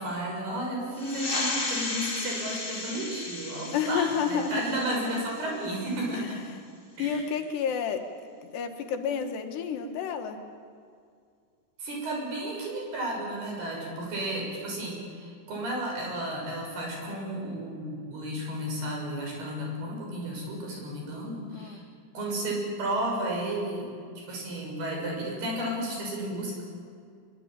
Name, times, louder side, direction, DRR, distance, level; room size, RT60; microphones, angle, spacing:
voice 1, 0.0-6.4 7.0-7.2 11.8-21.8 22.1-23.9 24.3-26.6, right 1 dB, 65° right, -1 dB, 8.7 m, -33 dB
sound 1, 0.9-6.1, left 2 dB, 20° left, 1.6 m, -35 dB
voice 2, 3.7-4.6 6.1-6.3 7.0-8.0 8.5-10.4 21.5-21.8, left 7 dB, 75° left, 5 dB, 3.6 m, -30 dB
23.5 x 23.5 x 9.0 m, 2.2 s
omnidirectional pair, 5.0 m